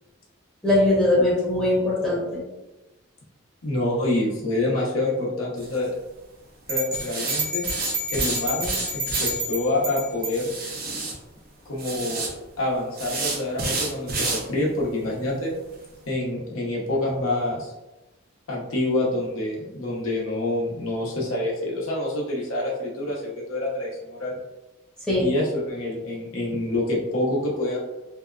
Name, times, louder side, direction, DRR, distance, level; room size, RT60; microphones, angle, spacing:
voice 1, 0.6-2.4 25.1-25.3, left 1 dB, 5° left, -8 dB, 0.7 m, -21 dB
voice 2, 3.6-5.9 6.7-7.6 8.1-10.5 11.7-15.6 16.1-17.7 18.5-24.3 25.2-27.8, left 1 dB, 85° left, -4 dB, 0.8 m, -27 dB
sound 1, 5.6-5.8 6.9-9.3 10.3-11.1 11.8-12.3 12.9-14.4 14.8-14.9 15.3-15.4 15.8-15.9, right 3 dB, 45° right, 0.5 m, -29 dB
sound 2, 6.7-10.4, right 1 dB, 85° right, 0.8 m, -29 dB
2.7 x 2.3 x 2.3 m, 1.0 s
head